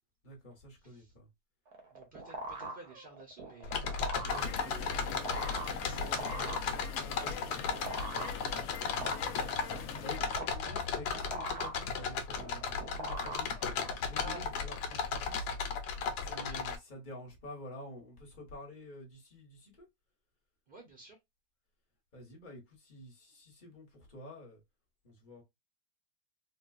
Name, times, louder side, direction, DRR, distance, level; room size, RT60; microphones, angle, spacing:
voice 1, 0.2-1.2 9.3-9.6 10.0-15.3 16.2-19.7 22.1-24.6 25.0-25.4, left 1 dB, 35° left, 1.3 m, -49 dB
voice 2, 0.8-1.1 1.9-9.1 14.1-14.5 16.3-16.6 20.7-21.2, right 2 dB, 40° right, 0.9 m, -52 dB
sound 1, 1.7-14.1, right 2 dB, 80° right, 1.6 m, -43 dB
sound 2, 3.6-16.8, left 5 dB, 90° left, 1.2 m, -35 dB
sound 3, 4.3-10.2, left 7 dB, 70° left, 0.9 m, -44 dB
3.7 x 2.4 x 2.3 m
omnidirectional pair, 1.7 m